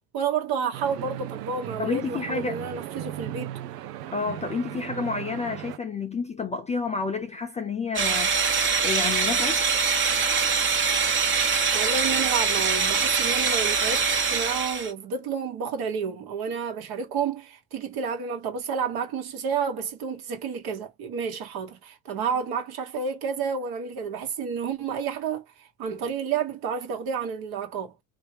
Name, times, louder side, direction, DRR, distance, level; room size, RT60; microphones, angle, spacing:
voice 1, 0.0-3.6 11.7-27.9, right 6 dB, 50° right, 1.3 m, -30 dB
sound 1, 0.7-5.8, right 13 dB, 75° right, 0.7 m, -37 dB
voice 2, 1.8-2.6 4.1-8.4 8.8-9.6, left 4 dB, 15° left, 0.5 m, -30 dB
sound 2, 8.0-14.9, right 5 dB, 25° right, 1.0 m, -23 dB
3.2 x 2.7 x 3.3 m
hypercardioid pair, 80°, 48 cm